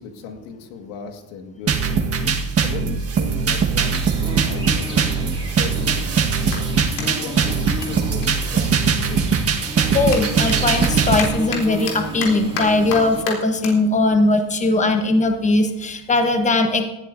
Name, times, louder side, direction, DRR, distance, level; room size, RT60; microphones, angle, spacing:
voice 1, 0.0-2.0 2.3-6.1 7.0-9.3, left 5 dB, 90° left, 4 dB, 2.0 m, -37 dB
sound 1, 1.7-11.3, right 5 dB, 35° right, 1.6 m, -21 dB
sound 2, 3.8-13.2, right 2 dB, 10° right, 2.5 m, -32 dB
Clapping, 6.4-9.2 9.5-16.1, left 5 dB, 70° left, 3.6 m, -34 dB
voice 2, 9.9-16.8, left 2 dB, 15° left, 6 dB, 1.2 m, -19 dB
18.5 x 12.5 x 2.7 m, 1.0 s
supercardioid pair, 110°, 43 cm